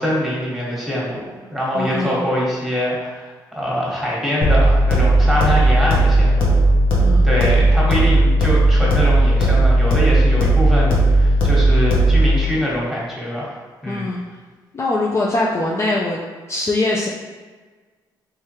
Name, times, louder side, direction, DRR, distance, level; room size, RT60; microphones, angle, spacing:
voice 1, 0.0-6.6 7.2-13.5 13.8-14.1, equal, ahead, -5 dB, 1.3 m, -23 dB
voice 2, 1.7-2.2 7.0-7.4 13.9-14.2 14.7-16.2 16.5-17.1, left 2 dB, 35° left, -3 dB, 0.4 m, -22 dB
sound 1, 4.4-12.4, right 1 dB, 90° left, 0.9 m, -15 dB
3.5 x 3.2 x 3.0 m, 1.4 s
cardioid pair, 95°, 9 cm